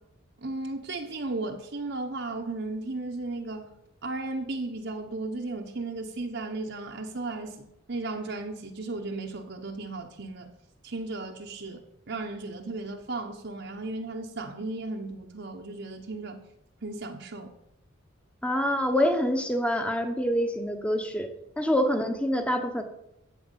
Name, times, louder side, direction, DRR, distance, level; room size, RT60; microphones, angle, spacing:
voice 1, 0.4-3.7 4.0-10.5 10.8-11.8 12.1-16.4 16.8-17.5, right 2 dB, 55° right, 1.1 m, -35 dB
voice 2, 18.4-21.3 21.6-22.8, equal, 5° left, 1.2 m, -26 dB
14.5 x 5.0 x 9.1 m
head